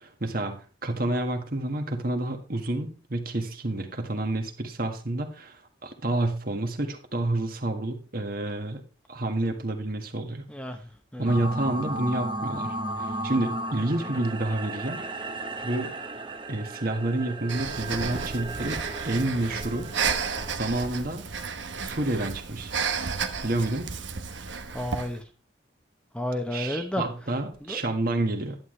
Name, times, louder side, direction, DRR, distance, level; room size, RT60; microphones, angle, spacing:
voice 1, 0.0-8.8 9.1-10.4 11.2-15.0 15.6-15.9 16.5-19.9 20.5-21.3 21.8-22.7 23.4-23.9 26.5-28.6, right 2 dB, 50° right, 4 dB, 1.7 m, -29 dB
sound 1, 11.2-20.5, right 1 dB, 25° right, 1.0 m, -35 dB
Breathing, 17.5-25.2, right 5 dB, 75° right, 1.1 m, -32 dB
voice 2, 24.7-25.2 26.1-27.1 27.6-27.8, left 1 dB, 5° left, 5 dB, 0.9 m, -31 dB
11.5 x 9.6 x 3.2 m, 0.34 s
head